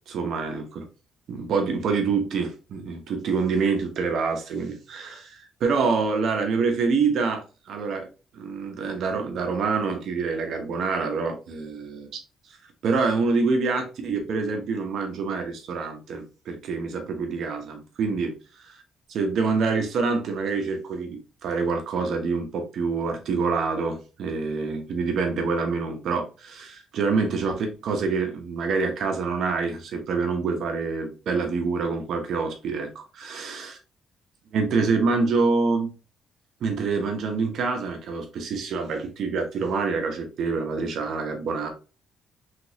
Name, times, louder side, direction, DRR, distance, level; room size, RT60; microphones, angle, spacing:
voice 1, 0.1-0.9 1.3-8.1 8.3-12.1 12.8-18.3 19.1-33.7 34.5-35.9 36.6-41.7, right 4 dB, 70° right, 1.0 m, -26 dB
3.4 x 3.0 x 2.7 m
cardioid pair, 90°, 0 cm